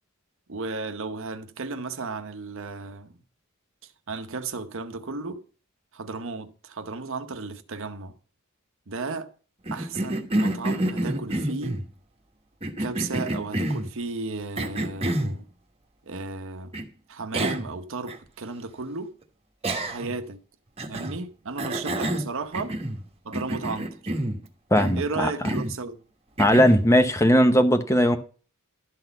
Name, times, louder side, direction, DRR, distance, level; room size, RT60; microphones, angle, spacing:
voice 1, 0.5-3.2 3.8-5.4 5.9-8.2 8.9-9.3 9.7-11.8 12.8-15.5 16.0-19.2 19.8-20.4 20.9-22.8 23.2-24.1 24.9-26.0, right 3 dB, 60° right, 0.9 m, -34 dB
Cough, 9.7-11.8 12.6-13.9 14.6-15.4 16.7-16.8 17.3-17.7 18.1-18.2 19.6-20.2 20.8-21.2 21.6-23.0 23.3-24.4 24.7-25.0 25.4-25.8 26.4-26.9, right 1 dB, 25° right, 1.2 m, -28 dB
voice 2, 24.7-25.3 26.4-28.2, equal, 15° left, 0.8 m, -18 dB
12.0 x 4.1 x 7.9 m
head